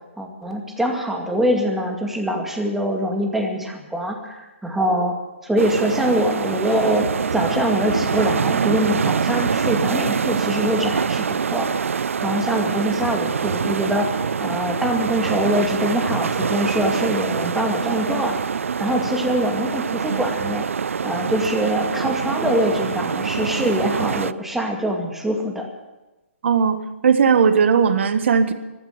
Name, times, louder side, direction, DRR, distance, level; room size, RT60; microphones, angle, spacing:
voice 1, 0.2-11.3 11.5-11.7 12.2-18.4 18.8-20.7 21.0-25.7, equal, 5° right, 1 dB, 2.2 m, -23 dB
sound 1, 5.6-24.3, right 6 dB, 80° right, 0.5 m, -24 dB
voice 2, 26.4-28.5, right 6 dB, 60° right, 10 dB, 1.5 m, -17 dB
15.0 x 12.0 x 8.1 m, 1.1 s
hypercardioid pair, 140°, 7 cm